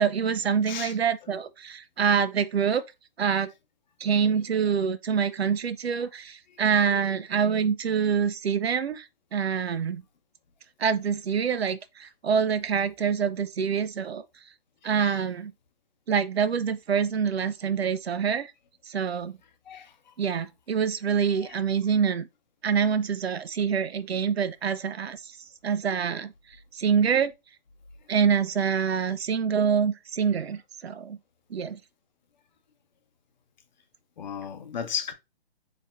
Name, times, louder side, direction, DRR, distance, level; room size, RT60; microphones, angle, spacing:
voice 1, 0.0-2.8 3.2-3.5 4.0-9.0 9.3-10.0 10.8-14.2 14.8-15.5 16.1-18.5 18.9-19.4 20.2-22.3 22.6-25.3 25.6-26.3 26.7-27.3 28.1-31.2 31.5-31.8, right 7 dB, 90° right, 0.6 m, -26 dB
voice 2, 14.8-15.2 19.7-20.1 21.4-21.6 34.2-35.1, left 7 dB, 50° left, 0.8 m, -35 dB
4.2 x 3.5 x 2.4 m
hypercardioid pair, 155°, 30 cm